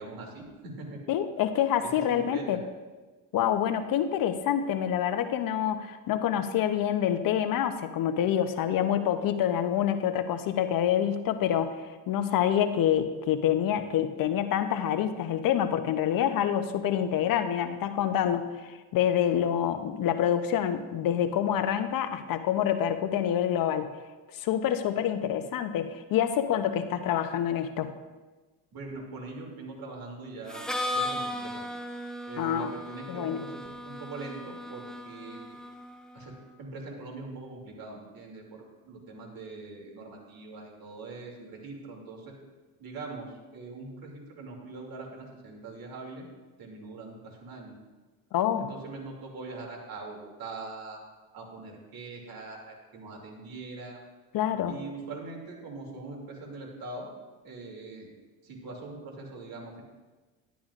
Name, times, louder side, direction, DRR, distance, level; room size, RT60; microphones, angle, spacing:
voice 1, 0.0-1.0 2.1-2.6 28.7-31.7 32.3-35.6 36.1-42.3 42.8-46.3 46.6-47.8 48.6-51.0 51.3-54.0 54.7-57.1 57.4-58.1 58.4-59.8, right 3 dB, 55° right, 0 dB, 2.6 m, -42 dB
voice 2, 1.1-2.6 3.3-23.9 24.4-27.9 32.4-32.7 33.1-33.4 48.3-48.7 54.3-54.8, left 10 dB, 55° left, 10 dB, 0.7 m, -27 dB
Harmonica, 30.5-36.2, left 1 dB, ahead, 0.7 m, -36 dB
11.5 x 11.0 x 2.4 m, 1.3 s
supercardioid pair, 95°, 41 cm